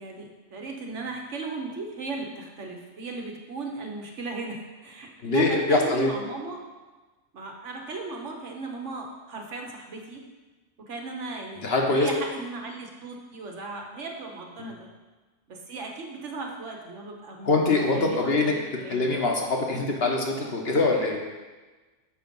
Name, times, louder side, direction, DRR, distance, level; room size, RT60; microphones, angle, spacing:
voice 1, 0.0-6.6 7.3-10.2 10.9-11.6 11.9-14.8 15.5-19.1, right 3 dB, 80° right, 1 dB, 1.4 m, -36 dB
voice 2, 5.2-6.1 11.6-12.1 14.6-14.7 17.4-18.5 18.9-21.2, left 3 dB, 60° left, 0 dB, 1.3 m, -23 dB
7.3 x 5.2 x 5.3 m, 1.3 s
omnidirectional pair, 1.2 m